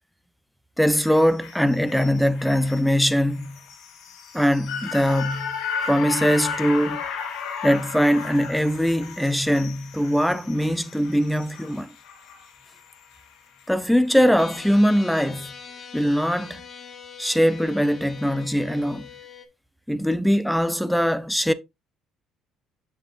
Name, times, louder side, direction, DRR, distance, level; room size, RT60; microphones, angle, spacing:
voice 1, 0.8-3.6 4.3-5.5 5.9-7.0 7.6-11.9 13.7-15.5 15.9-16.6 17.2-19.1 19.9-21.5, equal, ahead, 0.5 m, -21 dB
sound 1, 0.9-13.3 13.6-13.7, left 6 dB, 70° left, 1.7 m, -35 dB
sound 2, 14.4-19.5, left 6 dB, 35° left, 1.2 m, -42 dB
7.3 x 7.2 x 2.5 m
cardioid pair, 120°, 0 cm